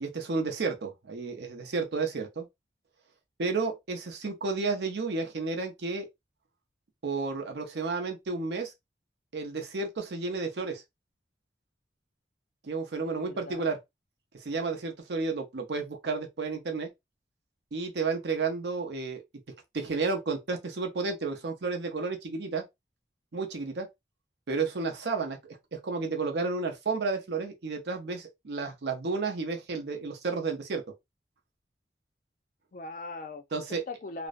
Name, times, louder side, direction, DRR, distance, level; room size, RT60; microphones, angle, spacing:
voice 1, 0.0-2.5 3.4-6.1 7.0-8.7 9.3-10.8 12.6-13.8 14.4-16.9 17.7-19.2 19.7-22.6 23.3-23.9 24.5-30.8 33.5-33.8, right 4 dB, 70° right, 0.6 m, -32 dB
voice 2, 13.1-13.8 32.7-34.3, left 2 dB, 45° left, 0.4 m, -41 dB
2.5 x 2.0 x 2.5 m
head